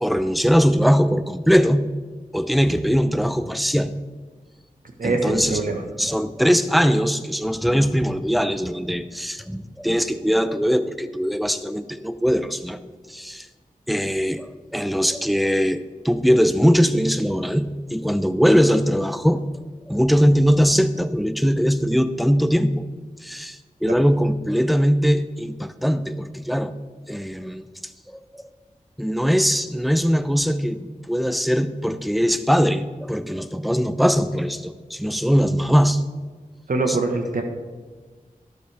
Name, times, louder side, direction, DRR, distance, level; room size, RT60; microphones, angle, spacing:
voice 1, 0.0-1.9 2.3-3.9 5.0-5.6 6.0-12.8 13.1-13.5 13.9-19.4 19.9-22.9 23.2-26.8 27.1-27.6 28.1-28.4 29.0-36.0 36.9-37.0, equal, ahead, 11 dB, 0.6 m, -21 dB
voice 2, 5.0-5.8 23.9-24.0 36.7-37.4, right 3 dB, 70° right, 4 dB, 1.4 m, -23 dB
12.0 x 12.0 x 3.5 m, 1.4 s
wide cardioid pair, 65°, 15 cm